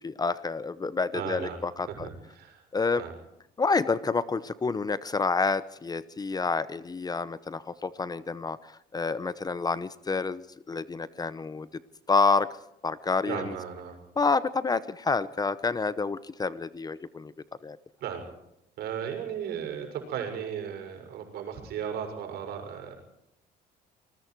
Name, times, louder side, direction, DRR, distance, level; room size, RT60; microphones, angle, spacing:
voice 1, 0.0-2.1 2.7-3.0 3.6-11.7 12.1-12.5 12.8-13.5 14.2-17.3 17.6-17.8, left 4 dB, 25° left, 15 dB, 0.9 m, -28 dB
voice 2, 1.1-1.6 1.9-2.6 2.9-3.1 13.3-14.0 18.0-18.3 18.8-23.0, right 8 dB, 75° right, 4 dB, 6.4 m, -35 dB
26.5 x 20.5 x 4.7 m, 0.81 s
cardioid pair, 110°, 17 cm